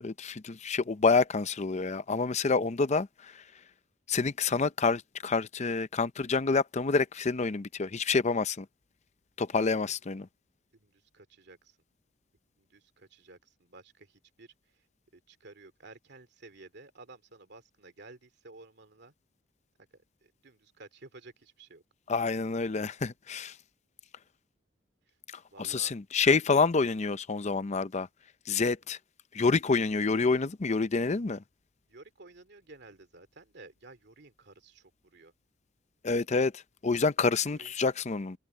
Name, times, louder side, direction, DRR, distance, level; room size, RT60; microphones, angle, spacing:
voice 1, 0.0-3.1 4.1-8.7 9.4-10.3 22.1-23.5 25.6-28.1 28.5-29.0 29.3-31.4 36.0-38.4, left 4 dB, 35° left, 0.6 m, -27 dB
voice 2, 10.7-11.8 12.6-14.5 15.1-19.1 20.2-21.8 25.1-25.2 25.5-25.9 31.9-35.3 37.4-37.7, right 3 dB, 60° right, 2.5 m, -53 dB
head